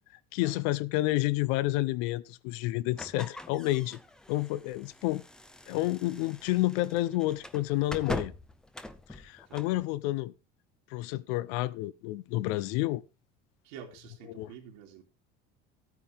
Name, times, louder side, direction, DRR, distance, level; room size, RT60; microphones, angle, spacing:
voice 1, 0.3-4.0 4.3-5.2 5.7-8.3 9.1-10.3 10.9-13.0 14.3-14.5, left 17 dB, 75° left, 0.7 m, -30 dB
sound 1, 2.9-9.8, left 1 dB, 5° left, 0.5 m, -43 dB
voice 2, 9.5-9.9 13.6-15.0, right 8 dB, 80° right, 3.0 m, -48 dB
13.5 x 9.3 x 3.5 m
cardioid pair, 170°, 21 cm